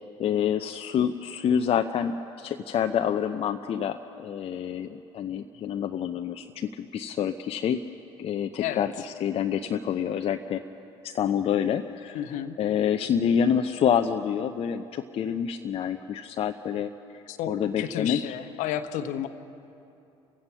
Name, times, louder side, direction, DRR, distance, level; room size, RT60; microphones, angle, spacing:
voice 1, 0.2-7.8 8.2-10.6 11.0-18.2, left 8 dB, 40° left, 6 dB, 0.7 m, -27 dB
voice 2, 12.1-12.5 17.3-19.3, left 10 dB, 60° left, 10 dB, 1.1 m, -32 dB
30.0 x 16.5 x 5.7 m, 2.8 s
figure-of-eight pair, 55°, 15 cm